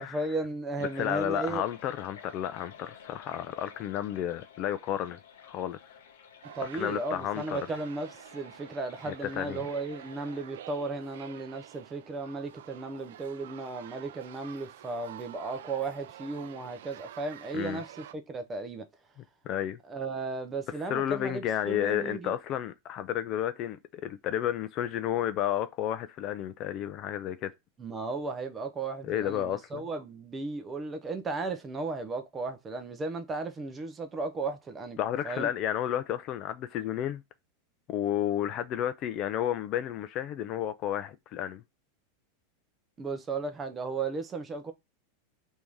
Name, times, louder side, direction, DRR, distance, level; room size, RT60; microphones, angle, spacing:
voice 1, 0.0-1.7 6.5-18.9 19.9-22.3 27.8-35.0 35.2-35.5 43.0-44.7, right 3 dB, 15° right, 0.6 m, -35 dB
sound 1, 0.8-10.5, left 7 dB, 90° left, 0.8 m, -53 dB
voice 2, 1.0-5.8 6.7-7.6 9.0-9.6 17.5-17.8 19.4-19.8 20.9-27.5 29.0-29.8 35.0-37.2 37.9-41.6, left 11 dB, 35° left, 0.3 m, -32 dB
sound 2, 6.4-18.1, right 11 dB, 80° right, 0.4 m, -49 dB
3.5 x 2.7 x 4.6 m
supercardioid pair, 155°, 0 cm